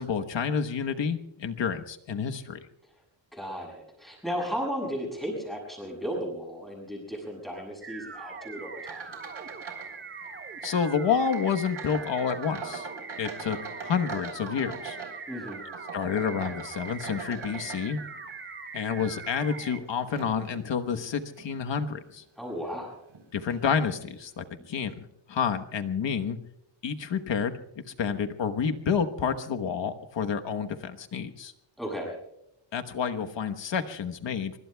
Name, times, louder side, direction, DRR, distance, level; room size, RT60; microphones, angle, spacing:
voice 1, 0.0-2.6 10.6-12.9 13.2-13.6 13.8-15.0 15.9-18.0 18.7-22.2 23.3-26.4 26.8-31.5 32.7-34.6, left 6 dB, 65° left, 7 dB, 1.2 m, -29 dB
voice 2, 3.3-9.2 15.3-15.6 22.4-23.0 31.8-32.1, equal, ahead, -1 dB, 7.1 m, -35 dB
sound 1, 7.8-19.8, right 4 dB, 25° right, 0.9 m, -42 dB
sound 2, 8.8-10.0 10.2-10.8 11.3-18.3 18.9-20.7 21.3-21.5 22.1-22.2 23.1-23.2 23.5-23.7, right 5 dB, 80° right, 4.1 m, -42 dB
25.0 x 23.5 x 2.3 m, 0.80 s
wide cardioid pair, 175°, 47 cm